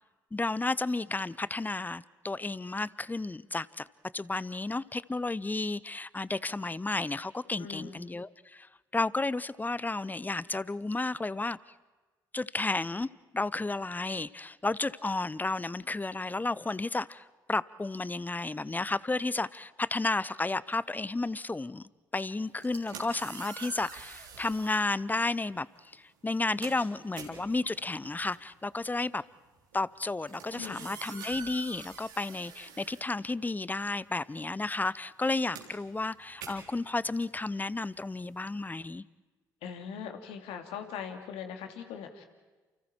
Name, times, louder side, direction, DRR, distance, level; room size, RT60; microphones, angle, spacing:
voice 1, 0.3-3.9 4.1-8.7 8.9-11.6 12.3-13.1 13.3-21.8 22.1-25.7 25.9-29.2 29.7-39.0, left 3 dB, 15° left, 20 dB, 0.7 m, -32 dB
voice 2, 7.6-8.0 30.6-30.9 39.6-42.2, left 7 dB, 70° left, 5 dB, 2.5 m, -41 dB
sound 1, 22.5-24.9 25.7-25.9 26.2-33.8 34.0-38.7, right 6 dB, 85° right, 3.8 m, -47 dB
29.5 x 28.5 x 4.5 m, 1.3 s
hypercardioid pair, 50°, 10 cm